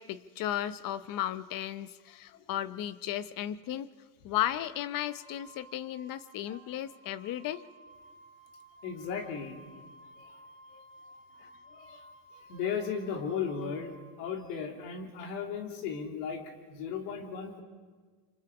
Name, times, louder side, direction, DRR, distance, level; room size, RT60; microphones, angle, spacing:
voice 1, 0.0-3.9 4.2-7.6 11.4-11.5, left 12 dB, 45° left, 14 dB, 0.9 m, -35 dB
Wind instrument woodwind instrument, 5.0-14.0, right 1 dB, 65° left, 5.4 m, -55 dB
voice 2, 8.8-9.6 10.2-10.4 10.7-10.8 11.7-12.0 12.5-17.6, left 6 dB, 85° left, 2 dB, 3.4 m, -36 dB
27.0 x 26.0 x 5.0 m, 1.5 s
supercardioid pair, 130°, 47 cm